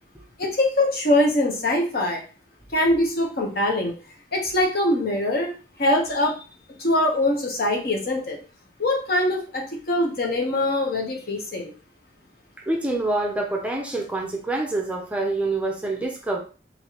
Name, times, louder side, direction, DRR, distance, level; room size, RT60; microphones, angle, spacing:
voice 1, 0.4-2.2 2.7-3.9 4.3-5.5 5.8-6.4 6.8-8.4 8.8-11.7, left 1 dB, 60° left, 0 dB, 0.9 m, -23 dB
voice 2, 12.6-16.4, right 2 dB, 5° right, 1 dB, 0.5 m, -26 dB
3.2 x 3.0 x 2.9 m, 0.37 s
head